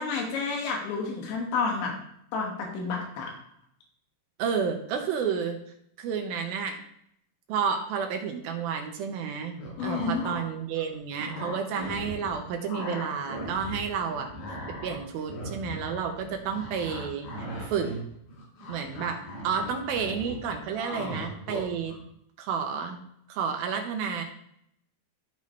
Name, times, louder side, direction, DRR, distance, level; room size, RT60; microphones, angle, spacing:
voice 1, 0.0-1.9 2.3-3.3 9.8-10.2, left 4 dB, 90° left, -1 dB, 3.9 m, -30 dB
voice 2, 4.4-5.6 6.0-6.8 7.5-9.5 9.8-14.3 14.8-17.9 18.7-22.0 22.4-23.0 23.3-24.2, right 6 dB, 75° right, 4 dB, 2.3 m, -31 dB
sound 1, 9.6-10.4 10.7-12.4 12.7-13.8 14.1-21.9, equal, 55° left, 6.1 m, -38 dB
14.5 x 5.4 x 3.2 m, 0.72 s
omnidirectional pair, 5.1 m